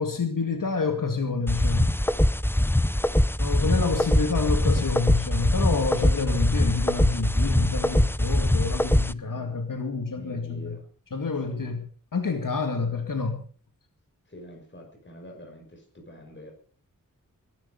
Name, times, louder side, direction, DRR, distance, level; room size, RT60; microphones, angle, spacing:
voice 1, 0.0-1.9 3.4-10.8 11.1-11.8 12.1-13.4, left 4 dB, 70° left, 6 dB, 2.2 m, -28 dB
sound 1, 1.5-9.1, left 1 dB, 5° left, 0.7 m, -23 dB
voice 2, 9.2-9.7 10.1-10.9 11.4-11.8 12.7-13.1 14.3-16.5, left 1 dB, 35° left, 2 dB, 5.8 m, -46 dB
22.0 x 12.0 x 5.3 m, 0.43 s
wide cardioid pair, 80°, 34 cm